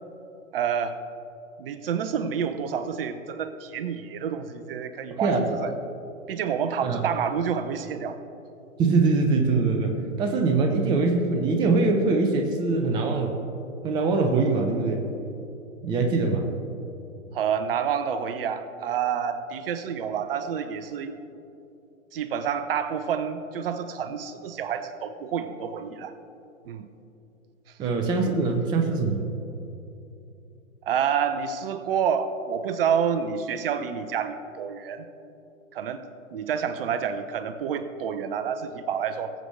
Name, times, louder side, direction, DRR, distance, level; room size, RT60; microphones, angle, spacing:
voice 1, 0.5-1.0 1.6-5.7 6.3-8.2 17.3-21.2 22.1-26.1 26.7-26.9 28.2-28.4 30.8-35.1 35.7-36.0 36.3-39.3, right 7 dB, 45° right, 11 dB, 0.8 m, -28 dB
voice 2, 5.1-5.4 6.8-7.0 8.8-13.4 13.8-15.1 15.8-16.5 27.8-29.2, right 3 dB, 10° right, 3 dB, 0.6 m, -23 dB
20.0 x 7.8 x 3.2 m, 2.8 s
hypercardioid pair, 125°, 40 cm